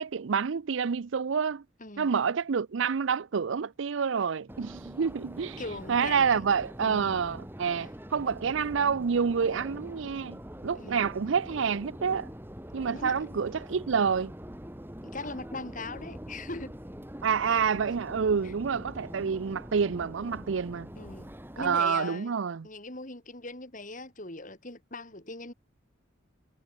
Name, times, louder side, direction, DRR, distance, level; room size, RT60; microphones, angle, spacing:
voice 1, 0.0-1.6 2.0-5.6 5.9-10.4 10.6-12.3 12.7-14.3 17.2-20.9 21.6-22.7, right 6 dB, 70° right, 0.5 m, -28 dB
voice 2, 1.8-2.1 5.6-6.5 6.8-7.2 7.8-7.9 10.8-11.1 12.9-13.3 15.0-16.7 17.5-17.6 18.4-18.5 21.0-22.3 22.6-25.5, left 2 dB, 40° left, 5.3 m, -40 dB
Subway metro underground, 4.5-21.8, equal, 10° right, 3.3 m, -44 dB
head